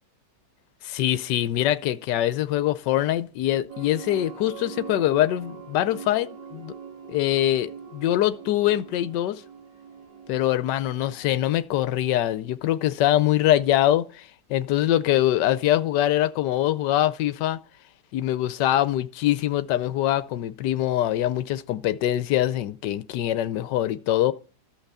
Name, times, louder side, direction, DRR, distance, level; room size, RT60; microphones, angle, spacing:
voice 1, 0.8-6.7 7.1-9.4 10.3-17.6 18.1-24.3, left 13 dB, 75° left, 1.3 m, -23 dB
sound 1, 3.7-11.4, right 6 dB, 85° right, 2.6 m, -42 dB
14.0 x 5.8 x 6.7 m
omnidirectional pair, 1.9 m